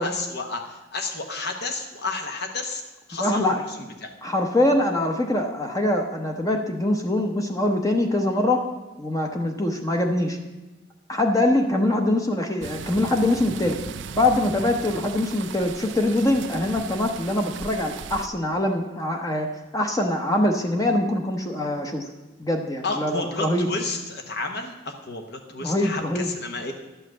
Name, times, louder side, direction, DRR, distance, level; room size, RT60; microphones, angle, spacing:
voice 1, 0.0-2.8 3.1-4.1 22.8-26.7, left 3 dB, 55° left, 4 dB, 1.1 m, -31 dB
voice 2, 3.2-3.6 4.2-8.6 9.0-10.4 11.1-13.8 14.2-19.5 19.7-22.0 22.4-23.7 25.6-26.3, left 1 dB, 20° left, 3 dB, 0.8 m, -23 dB
sound 1, 12.6-18.3, right 6 dB, 70° right, 0.5 m, -37 dB
11.0 x 5.7 x 7.6 m, 1.1 s
head